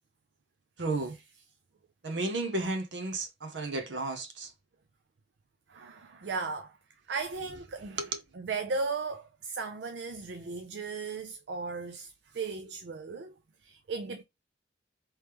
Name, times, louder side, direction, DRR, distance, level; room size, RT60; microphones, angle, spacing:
voice 1, 0.8-1.1 2.0-4.5 8.0-8.1, right 2 dB, 85° right, 0.8 m, -33 dB
voice 2, 5.7-6.7 7.1-8.0 8.3-13.3 13.6-14.2, right 4 dB, 70° right, 0.4 m, -36 dB
3.1 x 3.1 x 3.4 m
head